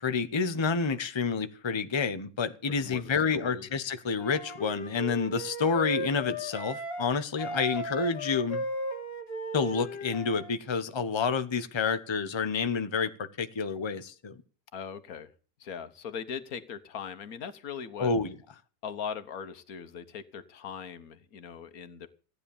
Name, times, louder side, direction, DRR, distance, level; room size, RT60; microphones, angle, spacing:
voice 1, 0.0-8.6 9.5-14.4 18.0-18.3, left 5 dB, 25° left, 0.8 m, -29 dB
voice 2, 2.8-3.7 14.7-15.3 15.6-18.1 18.8-22.1, left 7 dB, 90° left, 1.6 m, -40 dB
Wind instrument woodwind instrument, 4.1-7.1 7.4-10.5, equal, 45° left, 2.3 m, -36 dB
15.0 x 9.8 x 7.1 m
omnidirectional pair, 1.5 m